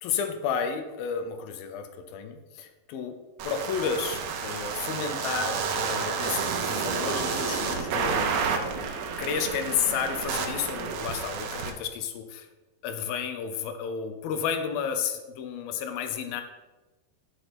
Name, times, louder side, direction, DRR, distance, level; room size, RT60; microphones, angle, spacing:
voice 1, 0.0-3.2 3.4-8.5 9.2-12.5 12.8-16.4, left 7 dB, 75° left, 7 dB, 2.2 m, -32 dB
sound 1, 3.4-11.7, right 5 dB, 75° right, 2.9 m, -30 dB
12.0 x 6.1 x 4.3 m, 1.2 s
omnidirectional pair, 4.9 m